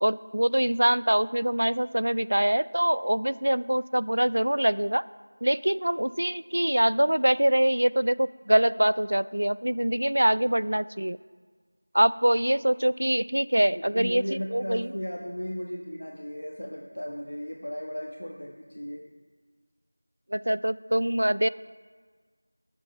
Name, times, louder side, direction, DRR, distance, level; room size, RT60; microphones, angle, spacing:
voice 1, 0.0-5.0 5.4-11.2 11.9-14.2 14.5-14.9 20.3-21.5, right 1 dB, 60° right, 18 dB, 0.3 m, -24 dB
voice 2, 13.7-19.1, equal, 65° left, 0 dB, 1.3 m, -35 dB
18.0 x 7.7 x 4.5 m, 1.5 s
figure-of-eight pair, 180°, 0 cm